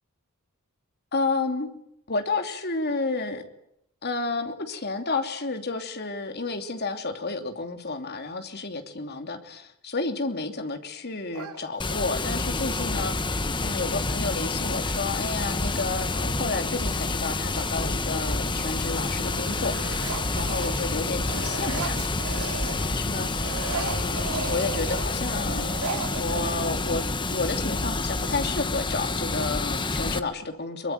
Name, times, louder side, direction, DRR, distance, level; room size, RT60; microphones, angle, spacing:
voice 1, 1.1-1.7 2.1-3.4 4.0-22.0 22.3-25.7 26.1-27.0 27.3-30.9, left 3 dB, 50° left, 6 dB, 2.9 m, -31 dB
sound 1, 11.3-12.3 13.9-14.1 14.4-14.9 15.5-17.0 17.6-18.0 18.4-22.9 23.2-27.1, right 4 dB, 85° right, 4.2 m, -37 dB
Water, 11.8-30.2, left 3 dB, 20° left, 1.3 m, -28 dB
23.5 x 23.5 x 9.3 m, 0.77 s
head